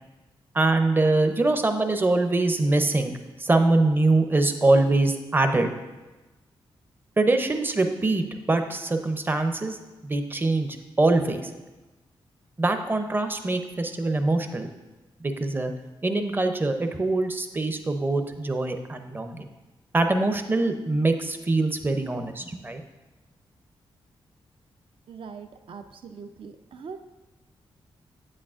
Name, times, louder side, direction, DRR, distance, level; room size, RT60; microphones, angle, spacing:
voice 1, 0.5-5.7 7.2-9.8 10.0-10.7 11.0-11.5 12.6-14.7 15.2-15.7 16.0-19.5 19.9-22.8, right 2 dB, 20° right, 7 dB, 0.6 m, -23 dB
voice 2, 25.1-27.2, right 5 dB, 65° right, 8 dB, 0.5 m, -42 dB
8.6 x 8.2 x 2.5 m, 1.1 s
cardioid pair, 95°, 10 cm